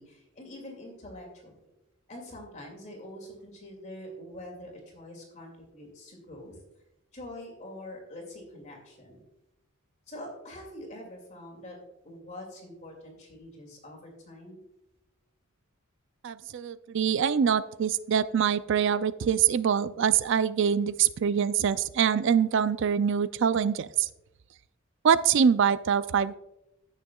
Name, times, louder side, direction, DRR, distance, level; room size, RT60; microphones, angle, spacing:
voice 1, 0.0-1.5 2.1-6.6 7.1-9.2 10.1-11.8 12.0-14.6, left 1 dB, 35° left, 0 dB, 2.3 m, -45 dB
voice 2, 16.2-24.1 25.0-26.3, right 7 dB, 60° right, 15 dB, 0.4 m, -24 dB
16.0 x 6.5 x 2.3 m, 0.92 s
head